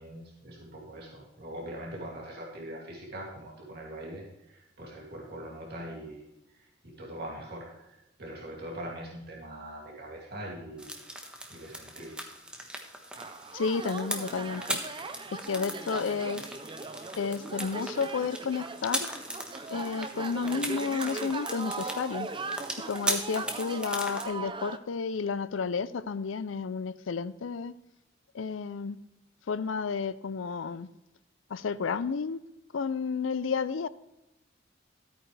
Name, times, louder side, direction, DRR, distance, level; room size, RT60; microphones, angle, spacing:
voice 1, 0.0-6.2 6.6-11.0 11.5-12.2, right 1 dB, 55° right, -3 dB, 2.6 m, -42 dB
sound 1, 10.8-24.2, right 1 dB, 5° right, 1.2 m, -38 dB
sound 2, 13.1-24.8, right 3 dB, 25° right, 0.5 m, -39 dB
voice 2, 13.5-14.8 15.3-16.4 17.2-19.1 19.7-22.3 22.9-27.7 28.3-29.0 29.5-30.9 31.5-32.4 32.7-33.9, left 5 dB, 85° left, 16 dB, 0.5 m, -31 dB
13.5 x 8.9 x 3.3 m, 0.94 s
head